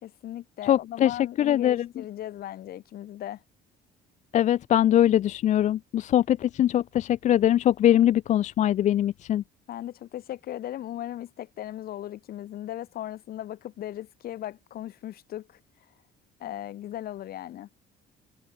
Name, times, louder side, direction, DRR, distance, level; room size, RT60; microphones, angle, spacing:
voice 1, 0.0-3.4 9.7-15.6 16.4-17.7, left 12 dB, 65° left, 2.4 m, -37 dB
voice 2, 0.6-1.9 4.3-9.4, left 11 dB, 45° left, 0.4 m, -22 dB
cardioid pair, 110°, 17 cm